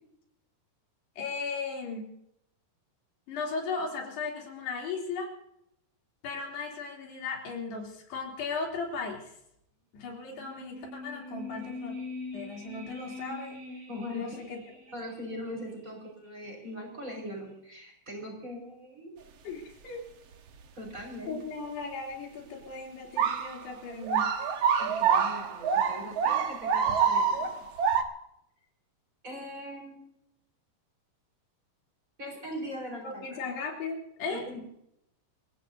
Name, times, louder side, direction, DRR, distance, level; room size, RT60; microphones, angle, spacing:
voice 1, 1.2-2.1 3.3-5.3 6.2-9.3 9.9-11.9 12.3-13.6 14.1-14.6 19.4-20.0 21.3-24.3 33.0-34.5, left 4 dB, 75° left, 0 dB, 5.3 m, -36 dB
sound 1, 10.3-15.6 15.9-16.0, left 3 dB, 45° right, 4.2 m, -42 dB
voice 2, 13.9-14.2 14.9-19.3 20.7-21.4 24.8-27.5 29.2-30.0 32.2-33.4 34.3-34.6, left 1 dB, 20° right, 0 dB, 5.0 m, -40 dB
Gibbons-Kao Yai National Park, 23.2-23.6 24.0-28.0, right 7 dB, 75° right, 1.5 m, -26 dB
28.0 x 17.0 x 2.8 m, 0.77 s
omnidirectional pair, 4.8 m